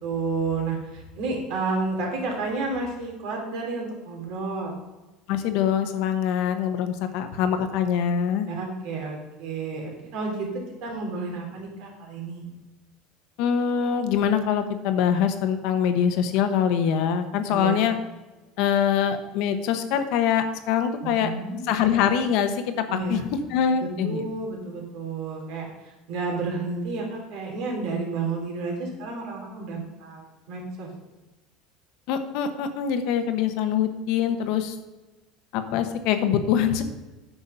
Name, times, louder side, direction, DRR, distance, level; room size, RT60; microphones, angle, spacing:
voice 1, 0.0-4.8 8.5-10.5 10.8-12.5 17.5-17.8 21.0-21.6 22.9-23.2 23.8-30.9, right 3 dB, 60° right, 1 dB, 3.0 m, -31 dB
voice 2, 5.3-8.5 13.4-18.0 18.6-21.3 21.7-22.5 23.1-23.2 23.5-24.2 32.1-34.8 35.5-36.8, left 8 dB, 60° left, 8 dB, 1.0 m, -24 dB
9.0 x 6.2 x 5.5 m, 1.1 s
cardioid pair, 160°, 0 cm